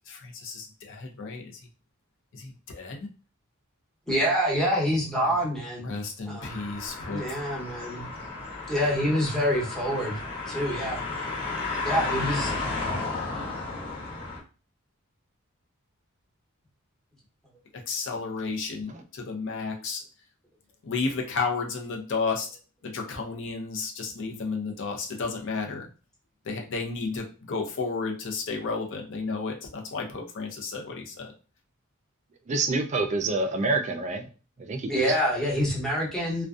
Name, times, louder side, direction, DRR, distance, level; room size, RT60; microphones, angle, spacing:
voice 1, 0.1-1.5 2.3-3.1 5.8-7.2 17.9-20.0 20.8-22.5 22.8-25.9 26.5-31.3, left 4 dB, 60° left, 2 dB, 0.6 m, -32 dB
voice 2, 4.1-6.0 6.3-6.7 7.1-8.0 8.7-11.0 11.8-12.5 34.9-36.4, equal, 5° left, -5 dB, 0.8 m, -26 dB
sound 1, 6.4-14.4, left 3 dB, 25° left, 1.0 m, -33 dB
voice 3, 32.5-34.2 34.6-35.0, right 3 dB, 35° right, 5 dB, 0.3 m, -27 dB
2.5 x 2.2 x 2.3 m, 0.34 s
head